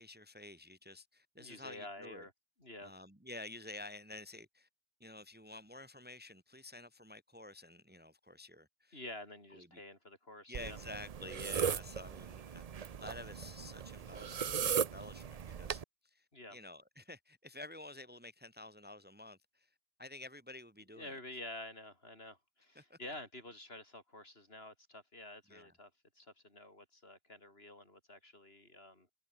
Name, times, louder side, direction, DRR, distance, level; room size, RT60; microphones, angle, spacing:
voice 1, 0.0-2.2 2.8-4.7 5.0-9.0 9.5-9.8 10.5-21.2 22.7-23.0 25.5-25.7, left 2 dB, 10° right, 1.5 m, -51 dB
voice 2, 1.4-2.3 2.6-2.9 8.9-10.8 16.3-16.6 20.9-29.1, left 1 dB, 65° left, 6.4 m, -49 dB
sound 1, 10.5-15.8, right 7 dB, 45° right, 0.6 m, -38 dB
omnidirectional pair, 1.1 m